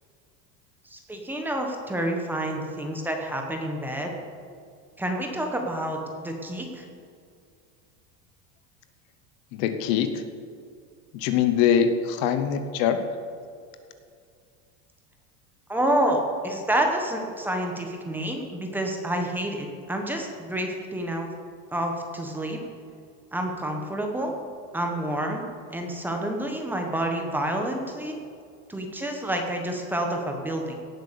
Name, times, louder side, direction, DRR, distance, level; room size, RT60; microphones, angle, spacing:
voice 1, 0.8-4.1 5.0-6.8 15.7-21.3 21.7-22.6 23.3-24.3 24.7-25.4 25.7-28.1 28.7-30.7, right 1 dB, 5° right, 2 dB, 1.1 m, -28 dB
voice 2, 9.5-10.2 11.1-13.0, left 8 dB, 50° left, 9 dB, 1.0 m, -23 dB
17.5 x 8.2 x 6.8 m, 2.3 s
cardioid pair, 180°, 36 cm